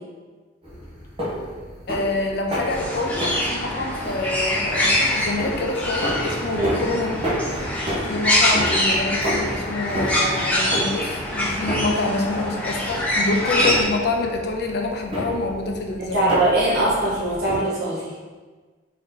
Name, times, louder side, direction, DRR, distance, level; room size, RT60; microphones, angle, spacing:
sound 1, 0.6-17.6, equal, 30° right, 0.9 m, -31 dB
voice 1, 1.9-7.2 8.0-16.4, left 2 dB, 55° left, 2 dB, 0.5 m, -27 dB
sound 2, 2.7-13.8, left 1 dB, 5° left, 0.8 m, -24 dB
voice 2, 16.0-18.1, right 2 dB, 55° right, -7 dB, 1.3 m, -22 dB
3.7 x 2.6 x 3.8 m, 1.4 s
head